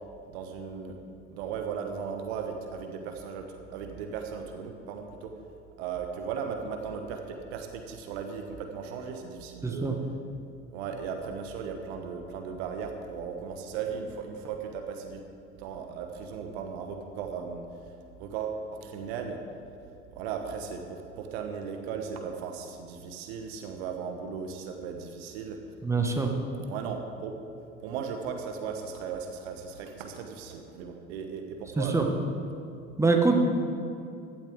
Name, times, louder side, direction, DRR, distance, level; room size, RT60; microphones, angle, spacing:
voice 1, 0.3-1.0 1.3-5.3 5.8-9.9 10.7-15.2 15.5-17.7 18.2-19.4 20.1-25.6 26.7-27.3 27.8-32.0, right 6 dB, 60° right, 5 dB, 1.3 m, -37 dB
voice 2, 9.6-9.9 25.8-26.3 31.8-32.0 33.0-33.4, right 3 dB, 10° right, 2 dB, 1.5 m, -24 dB
16.0 x 12.0 x 3.6 m, 2.6 s
figure-of-eight pair, 65°, 37 cm